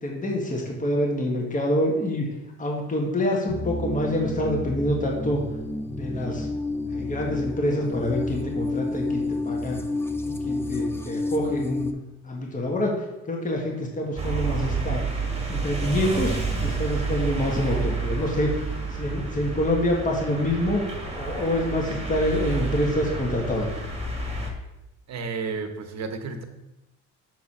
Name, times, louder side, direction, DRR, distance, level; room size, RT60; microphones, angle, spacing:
voice 1, 0.0-2.2 2.6-5.4 5.8-6.5 6.9-9.8 10.2-11.9 12.2-15.0 15.5-20.8 21.1-23.7, left 1 dB, 25° left, -1 dB, 1.6 m, -26 dB
sound 1, 3.5-11.9, left 2 dB, 10° left, 0.5 m, -30 dB
sound 2, 14.2-24.5, right 4 dB, 20° right, 1.4 m, -29 dB
voice 2, 25.1-26.4, right 4 dB, 60° right, 7 dB, 0.9 m, -32 dB
6.1 x 4.7 x 4.3 m, 0.96 s
cardioid pair, 90°, 30 cm